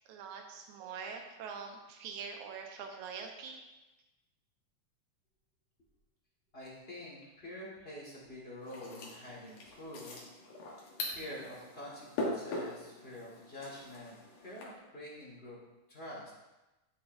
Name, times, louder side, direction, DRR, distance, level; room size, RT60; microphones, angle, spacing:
voice 1, 0.0-3.6, right 6 dB, 75° right, 3 dB, 2.3 m, -44 dB
voice 2, 6.5-10.2 10.6-10.7 11.0-15.6 15.9-16.3, left 1 dB, 25° left, -5 dB, 1.5 m, -47 dB
sound 1, 8.6-14.6, left 2 dB, 90° left, 2.9 m, -42 dB
9.9 x 8.2 x 2.7 m, 1.0 s
omnidirectional pair, 3.5 m